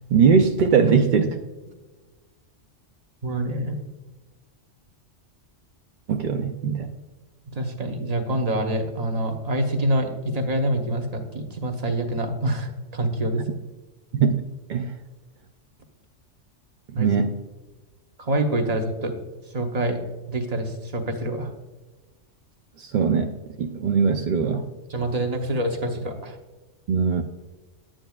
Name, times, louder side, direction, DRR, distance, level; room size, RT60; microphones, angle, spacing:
voice 1, 0.1-1.4 6.1-6.9 14.1-14.4 14.7-14.9 16.9-17.4 22.8-24.6 26.9-27.2, right 6 dB, 60° right, 6 dB, 0.5 m, -21 dB
voice 2, 3.2-3.8 7.5-13.4 16.9-17.1 18.2-19.1 19.5-20.0 20.3-21.5 24.9-26.4, right 1 dB, 35° right, 5 dB, 0.9 m, -26 dB
9.0 x 8.9 x 2.3 m, 1.3 s
omnidirectional pair, 1.3 m